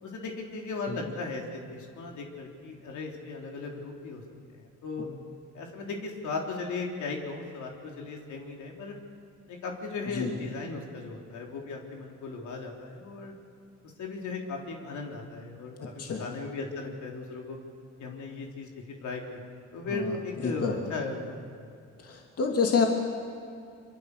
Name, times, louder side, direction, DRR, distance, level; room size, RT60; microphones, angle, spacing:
voice 1, 0.0-4.2 4.6-5.1 5.5-8.9 9.5-13.3 14.0-17.6 18.0-21.6, left 3 dB, 75° left, 0 dB, 3.5 m, -37 dB
voice 2, 20.4-20.8 22.0-22.9, left 5 dB, 50° left, 1 dB, 2.8 m, -28 dB
25.5 x 24.0 x 6.7 m, 2.4 s
cardioid pair, 90°, 30 cm